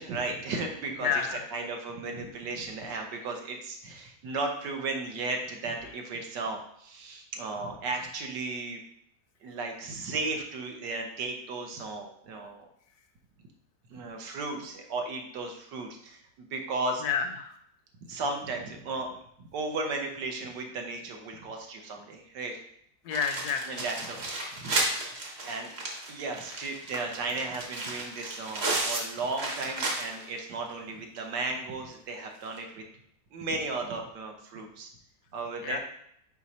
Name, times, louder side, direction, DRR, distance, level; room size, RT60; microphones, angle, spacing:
voice 1, 0.0-8.8 9.4-12.7 13.9-17.0 18.1-22.6 23.7-24.3 24.6-24.7 25.2-25.7 26.1-32.8 33.3-34.9 35.3-35.8, right 3 dB, 75° right, 2 dB, 1.6 m, -35 dB
voice 2, 1.0-1.4 17.0-17.6 23.0-23.8 35.6-35.8, left 7 dB, 70° left, 7 dB, 1.0 m, -30 dB
sound 1, 23.1-30.4 30.7-30.8 31.2-31.3 32.5-32.6, right 2 dB, 40° right, 1.2 m, -33 dB
5.0 x 4.7 x 4.1 m, 0.71 s
omnidirectional pair, 1.9 m